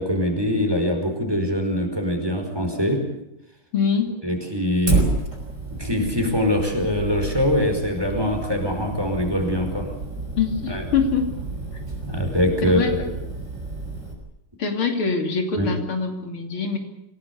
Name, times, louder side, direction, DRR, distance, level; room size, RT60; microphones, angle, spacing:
voice 1, 0.0-3.0 4.2-5.1 5.7-9.9 10.7-10.8 12.0-13.0 15.6-15.7, left 1 dB, 10° right, 4 dB, 4.9 m, -23 dB
voice 2, 3.7-4.1 10.4-11.3 12.6-13.0 14.6-16.8, left 5 dB, 80° left, 4 dB, 3.8 m, -24 dB
Fire, 4.9-14.1, right 3 dB, 35° right, 5.5 m, -30 dB
26.0 x 18.0 x 8.5 m, 0.84 s
omnidirectional pair, 2.3 m